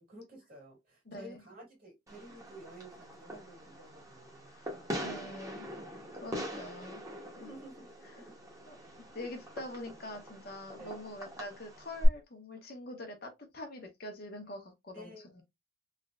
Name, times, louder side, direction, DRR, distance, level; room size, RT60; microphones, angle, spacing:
voice 1, 0.1-4.5 7.4-8.4 9.1-9.3 10.8-11.0 14.9-15.2, right 1 dB, 45° right, 1.8 m, -52 dB
voice 2, 1.0-1.4 4.5-5.7 6.1-7.0 7.4-7.6 8.0-8.2 8.7-8.8 9.1-15.4, left 1 dB, 50° left, 0.8 m, -45 dB
Fireworks, 2.1-12.1, equal, 15° right, 0.9 m, -41 dB
3.2 x 2.8 x 2.4 m
head